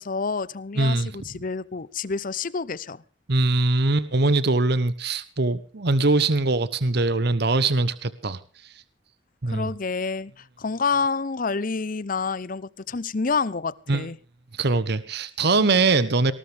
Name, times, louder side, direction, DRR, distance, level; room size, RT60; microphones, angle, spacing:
voice 1, 0.0-3.0 9.5-14.2, left 4 dB, 45° left, 19 dB, 0.7 m, -28 dB
voice 2, 0.8-1.1 3.3-8.4 9.4-9.7 13.9-14.0 14.5-16.3, right 3 dB, 55° right, 15 dB, 1.0 m, -22 dB
19.0 x 19.0 x 3.4 m, 0.38 s
head